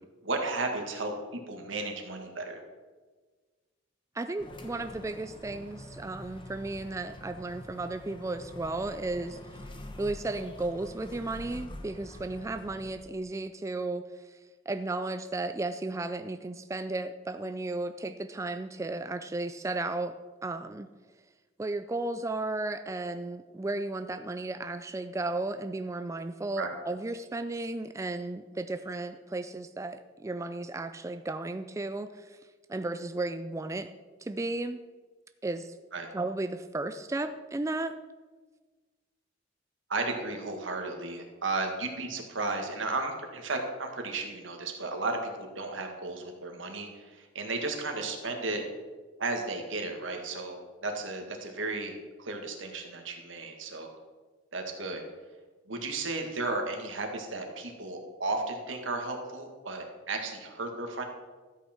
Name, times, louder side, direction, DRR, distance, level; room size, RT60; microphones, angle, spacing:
voice 1, 0.2-2.6 26.6-26.7 35.9-36.1 39.9-48.6 49.2-51.9 52.2-53.9 54.5-55.0 55.7-61.0, right 3 dB, 85° right, 3 dB, 1.8 m, -34 dB
voice 2, 4.1-9.4 10.0-14.4 14.7-20.1 20.4-20.9 21.6-32.4 32.7-33.9 34.2-34.8 35.4-35.7 36.1-38.0, right 2 dB, 15° right, 9 dB, 0.3 m, -34 dB
sound 1, 4.4-13.0, left 1 dB, 25° left, 1.0 m, -46 dB
13.0 x 8.4 x 4.4 m, 1.4 s
head